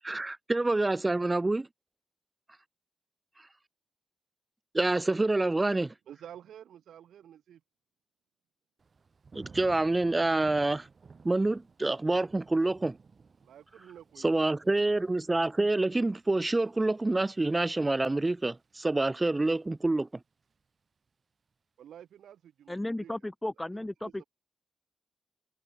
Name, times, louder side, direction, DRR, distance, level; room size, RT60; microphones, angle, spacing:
voice 1, 0.0-1.7 4.7-5.9 9.3-10.9 11.2-13.0 14.2-20.1, right 2 dB, 25° right, 0.9 m, -27 dB
voice 2, 6.1-7.6 13.4-14.5 21.8-23.1 24.0-24.2, right 10 dB, 80° right, 7.2 m, -50 dB
Thunder / Rain, 8.8-19.7 20.1-20.6, right 5 dB, 50° right, 2.7 m, -56 dB
voice 3, 22.7-24.2, left 1 dB, 15° left, 1.9 m, -34 dB
supercardioid pair, 50°, 0 cm